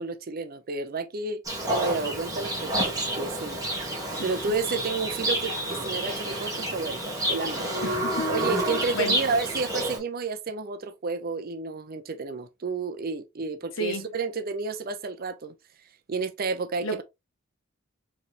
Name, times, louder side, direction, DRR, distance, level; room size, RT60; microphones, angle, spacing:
voice 1, 0.0-1.4 1.7-7.0 7.3-7.7 8.3-15.5 16.1-17.0, right 4 dB, 45° right, 0.5 m, -31 dB
Livestock farm animals working animals, 1.4-10.0, right 1 dB, 15° right, 1.7 m, -29 dB
voice 2, 7.8-8.3 8.9-9.2 13.8-14.1 16.8-17.0, left 1 dB, 65° left, 1.2 m, -31 dB
4.6 x 3.3 x 2.8 m
head